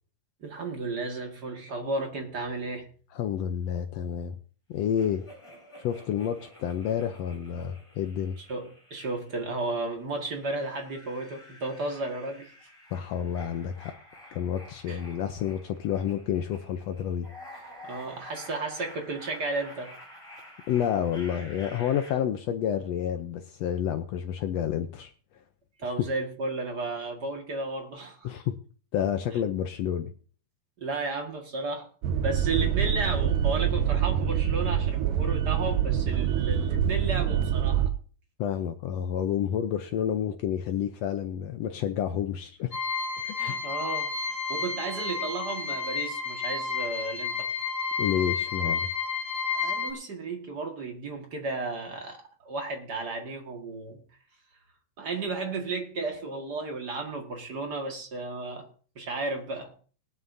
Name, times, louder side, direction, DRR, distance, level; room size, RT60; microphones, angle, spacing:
voice 1, 0.4-2.9 8.4-12.5 14.9-15.0 17.8-19.9 25.8-28.3 30.8-31.9 32.2-37.9 43.4-44.1 44.5-47.7 49.5-54.0 55.0-58.7 59.0-59.7, right 3 dB, 35° right, 1.9 m, -33 dB
voice 2, 3.1-4.3 4.7-5.3 5.8-8.4 12.9-13.9 14.3-17.3 20.7-25.1 28.2-28.6 28.9-30.1 38.4-42.7 43.2-43.4 48.0-48.9, left 9 dB, 80° left, 1.4 m, -29 dB
sound 1, 5.0-9.7 10.2-22.1, left 1 dB, 10° left, 5.3 m, -50 dB
sound 2, 32.0-37.9, right 9 dB, 90° right, 2.6 m, -25 dB
sound 3, 42.7-49.9, left 5 dB, 35° left, 1.4 m, -31 dB
19.5 x 11.0 x 2.7 m
omnidirectional pair, 3.9 m